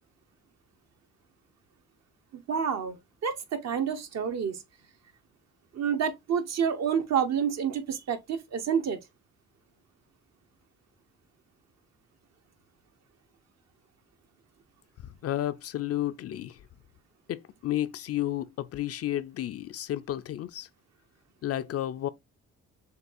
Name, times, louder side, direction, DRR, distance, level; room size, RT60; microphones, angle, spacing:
voice 1, 2.3-4.6 5.7-9.0, right 7 dB, 60° right, 1.0 m, -29 dB
voice 2, 15.2-16.6 17.3-20.7 21.4-22.1, left 13 dB, 55° left, 0.4 m, -32 dB
6.7 x 2.3 x 2.5 m
cardioid pair, 90°, 30 cm